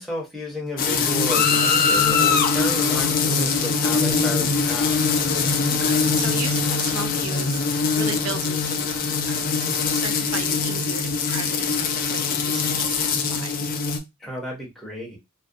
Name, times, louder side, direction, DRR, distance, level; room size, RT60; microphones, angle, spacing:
voice 1, 0.0-5.0 14.2-15.2, equal, ahead, -3 dB, 0.7 m, -32 dB
sound 1, 0.8-14.0, left 5 dB, 40° left, 0.3 m, -22 dB
voice 2, 5.6-13.6, right 5 dB, 80° right, 7 dB, 0.4 m, -36 dB
2.3 x 2.1 x 2.5 m, 0.23 s
head